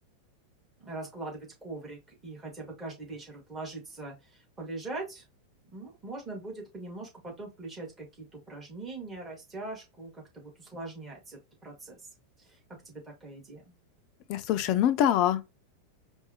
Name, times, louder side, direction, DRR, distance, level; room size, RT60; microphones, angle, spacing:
voice 1, 0.8-5.2 5.7-12.0 12.4-12.6 12.8-13.7, right 2 dB, 15° right, 1.9 m, -42 dB
voice 2, 14.3-15.4, left 11 dB, 40° left, 0.5 m, -24 dB
4.7 x 2.3 x 2.8 m
figure-of-eight pair, 90°, 0 cm